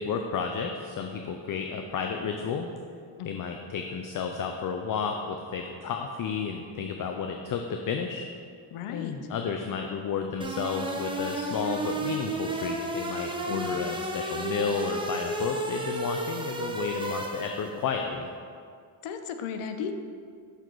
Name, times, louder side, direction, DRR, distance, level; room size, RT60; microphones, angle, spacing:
voice 1, 0.0-2.7 3.2-8.3 8.9-18.3, left 6 dB, 45° left, 4 dB, 0.5 m, -32 dB
voice 2, 8.7-9.2 13.5-13.8 19.0-19.9, left 7 dB, 80° left, 8 dB, 0.7 m, -35 dB
sound 1, 10.4-17.8, right 2 dB, 10° right, 0.6 m, -32 dB
6.6 x 4.0 x 4.6 m, 2.3 s
cardioid pair, 80°, 50 cm